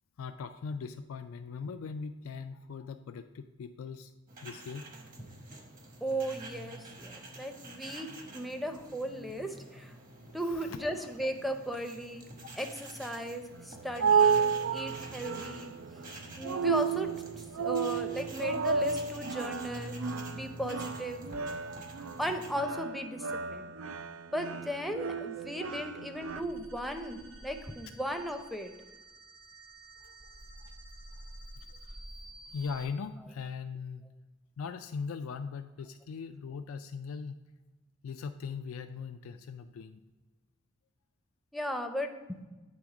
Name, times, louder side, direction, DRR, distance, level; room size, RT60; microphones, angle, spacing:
voice 1, 0.2-4.1 4.4-4.9 10.3-10.9 12.4-12.5 30.0-30.1 30.6-30.7 31.6-32.0 32.5-34.0 34.6-37.4 38.0-40.0, left 5 dB, 90° left, 7 dB, 0.3 m, -40 dB
sound 1, 4.3-22.5, right 1 dB, 45° right, 1.1 m, -48 dB
voice 2, 6.0-9.9 10.3-12.2 12.6-14.4 14.7-15.7 16.4-17.1 17.4-21.2 22.2-23.7 24.3-28.7 41.5-42.4, equal, ahead, 4 dB, 0.5 m, -36 dB
sound 2, 13.5-26.4, right 6 dB, 85° right, 0.4 m, -32 dB
sound 3, 26.0-32.9, right 1 dB, 65° right, 0.9 m, -50 dB
8.6 x 3.5 x 4.8 m, 1.2 s
head